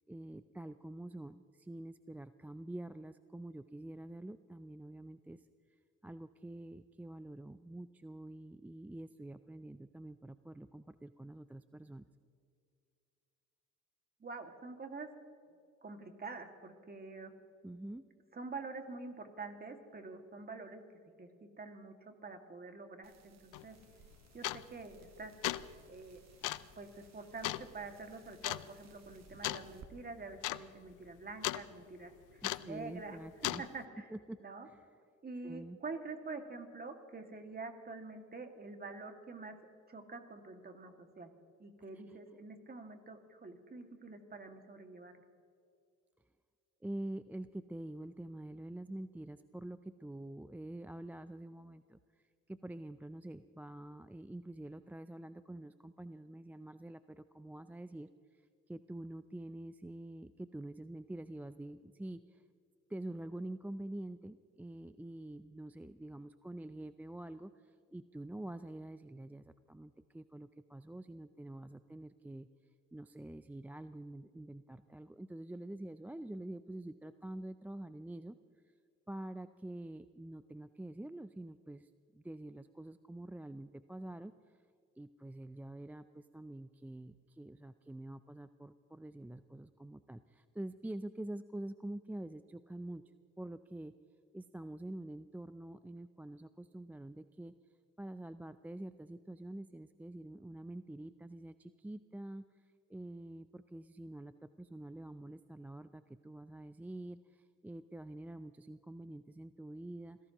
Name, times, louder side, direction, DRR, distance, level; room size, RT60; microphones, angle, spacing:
voice 1, 0.1-5.5 6.0-12.0 17.6-18.0 32.4-33.6 34.1-34.4 34.7-34.8 35.4-35.8 42.1-42.2 46.8-52.0 52.5-58.4 58.7-62.4 62.9-72.5 72.9-78.4 79.1-84.3 85.0-93.0 93.4-93.9 94.3-97.5 98.0-102.4 102.9-110.2, right 1 dB, 5° right, 12 dB, 0.4 m, -46 dB
voice 2, 14.2-15.1 15.8-17.3 18.3-20.8 21.2-21.3 21.6-23.8 24.3-25.3 25.9-26.2 26.8-34.1 34.4-34.7 35.2-39.6 39.9-41.3 41.6-45.1, right 3 dB, 30° right, 5 dB, 2.1 m, -47 dB
sound 1, 23.0-29.9, right 6 dB, 60° right, 1.4 m, -62 dB
sound 2, 23.5-23.7 24.4-24.8 25.3-25.7 26.4-26.7 27.4-27.7 28.4-28.7 29.4-29.7 30.0-30.1 30.4-30.6 30.9-31.6 32.4-32.8 33.4-33.7, left 16 dB, 85° left, 0.5 m, -36 dB
27.0 x 17.0 x 3.0 m, 2.3 s
cardioid pair, 90°, 30 cm